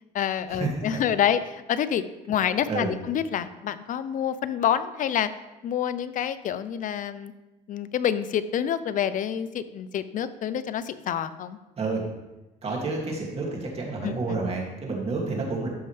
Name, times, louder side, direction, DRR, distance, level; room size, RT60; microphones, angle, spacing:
voice 1, 0.1-5.3 5.6-7.3 7.7-11.6 14.0-14.4, left 9 dB, 50° left, 13 dB, 0.6 m, -27 dB
voice 2, 12.6-15.7, right 3 dB, 35° right, -1 dB, 2.4 m, -29 dB
13.5 x 5.6 x 3.3 m, 1.0 s
cardioid pair, 110°, 17 cm